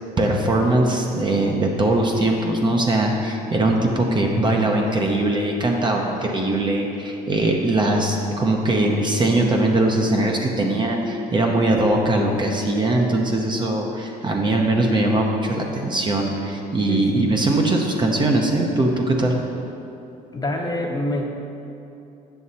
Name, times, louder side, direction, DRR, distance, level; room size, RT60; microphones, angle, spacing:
voice 1, 0.2-19.3, right 2 dB, 25° right, 1 dB, 0.8 m, -21 dB
voice 2, 16.9-17.4 20.3-21.2, left 1 dB, 25° left, 0 dB, 1.0 m, -27 dB
7.9 x 6.3 x 4.2 m, 2.8 s
cardioid pair, 110°, 17 cm